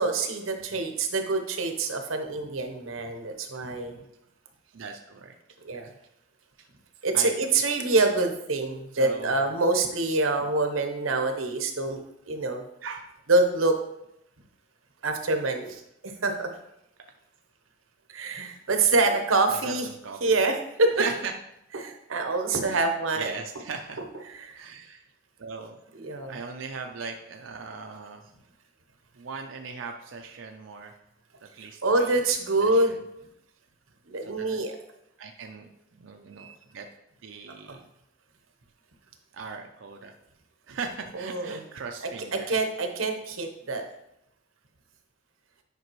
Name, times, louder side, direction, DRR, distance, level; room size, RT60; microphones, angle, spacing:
voice 1, 0.0-4.0 5.6-5.9 7.0-12.0 12.3-12.6 13.3-13.8 15.0-15.7 16.0-16.5 18.1-19.9 20.2-20.9 21.7-23.3 24.3-24.6 26.0-26.4 31.8-33.0 34.1-34.8 36.4-36.5 37.7-37.8 41.1-41.6 42.3-43.8, right 3 dB, 85° right, 5 dB, 1.0 m, -26 dB
voice 2, 4.7-5.3 5.8-5.9 7.1-7.5 8.9-9.5 12.8-13.1 15.7-15.8 18.5-18.6 19.5-20.2 21.0-21.3 22.6-22.9 23.1-24.0 24.5-25.1 25.4-25.8 26.3-28.3 29.1-30.9 31.4-32.1 32.6-33.0 34.2-34.6 35.2-36.9 37.2-37.9 39.3-40.2 40.7-42.5, right 5 dB, 65° right, 3 dB, 0.5 m, -39 dB
9.4 x 5.1 x 3.1 m, 0.80 s
head